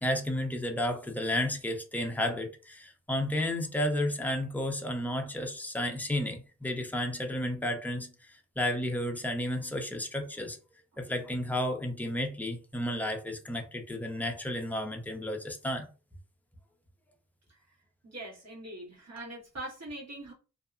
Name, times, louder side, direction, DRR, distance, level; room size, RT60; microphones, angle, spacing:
voice 1, 0.0-10.6 11.0-15.9, left 1 dB, 5° left, 0.6 m, -32 dB
voice 2, 18.0-20.3, right 1 dB, 55° right, 1.5 m, -42 dB
2.7 x 2.1 x 2.4 m
cardioid pair, 75°, 31 cm